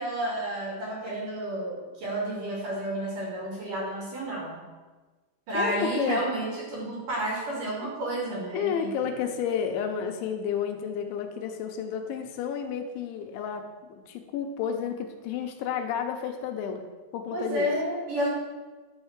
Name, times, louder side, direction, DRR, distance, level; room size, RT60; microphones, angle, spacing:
voice 1, 0.0-4.6 5.5-9.1 17.3-18.3, right 1 dB, 50° right, -3 dB, 3.5 m, -31 dB
voice 2, 5.5-6.2 8.5-16.9 17.1-17.7, left 7 dB, 80° left, 5 dB, 3.1 m, -31 dB
12.0 x 5.5 x 7.2 m, 1.3 s
omnidirectional pair, 5.5 m